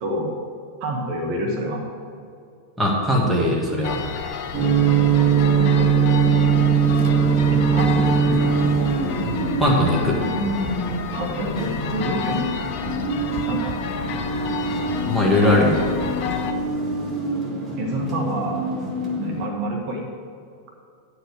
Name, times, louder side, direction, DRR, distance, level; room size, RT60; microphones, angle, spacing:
voice 1, 0.0-0.3 0.8-1.8 4.8-5.0 5.6-5.9 7.5-8.4 11.1-12.4 13.5-13.7 15.2-15.7 17.8-18.6 19.2-20.0, right 1 dB, 45° right, 0 dB, 1.4 m, -27 dB
voice 2, 2.8-4.2 9.6-10.2 15.1-15.8, left 1 dB, ahead, -4 dB, 1.8 m, -20 dB
sound 1, 3.8-16.5, left 7 dB, 45° left, 0.6 m, -31 dB
sound 2, 4.5-19.5, right 5 dB, 20° right, 1.8 m, -22 dB
10.0 x 4.9 x 6.3 m, 2.4 s
figure-of-eight pair, 90°, 0 cm